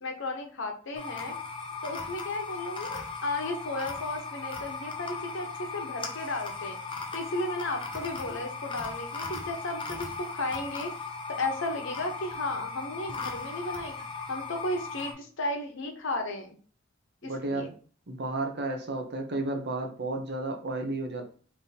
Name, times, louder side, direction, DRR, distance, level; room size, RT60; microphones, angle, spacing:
voice 1, 0.0-1.3 1.8-6.8 7.1-10.9 11.3-13.9 14.3-16.6 17.2-17.7, left 2 dB, 65° left, 4 dB, 0.9 m, -34 dB
sound 1, 0.9-15.1, left 4 dB, 25° left, 0.7 m, -38 dB
voice 2, 17.2-17.7 18.1-21.3, right 2 dB, 55° right, 4 dB, 0.8 m, -32 dB
3.5 x 2.8 x 4.1 m, 0.41 s
head